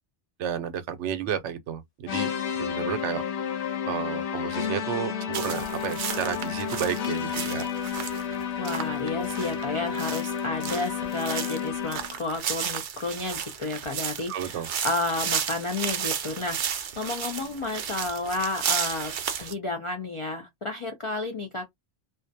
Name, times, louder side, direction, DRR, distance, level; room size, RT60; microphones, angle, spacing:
voice 1, 0.4-3.2 3.9-7.7 14.3-14.7, right 8 dB, 80° right, 0.9 m, -32 dB
sound 1, 2.1-12.2, left 8 dB, 75° left, 0.8 m, -31 dB
sound 2, 5.3-19.5, right 8 dB, 60° right, 0.5 m, -33 dB
voice 2, 8.6-19.1 19.4-21.7, left 2 dB, 55° left, 0.3 m, -31 dB
2.4 x 2.2 x 2.6 m
omnidirectional pair, 1.2 m